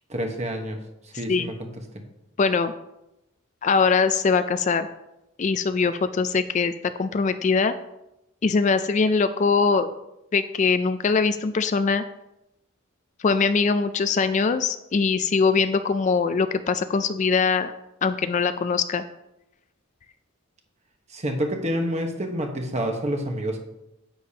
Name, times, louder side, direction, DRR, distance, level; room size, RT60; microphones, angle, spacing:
voice 1, 0.1-0.8 1.2-1.7 1.9-2.0 21.1-23.6, equal, 35° right, 3 dB, 1.2 m, -28 dB
voice 2, 2.4-2.7 3.6-4.9 5.4-6.7 7.0-7.7 8.4-9.9 10.3-12.0 13.2-17.7 18.0-19.0, left 5 dB, 35° left, 11 dB, 0.3 m, -22 dB
9.9 x 8.5 x 2.9 m, 0.88 s
head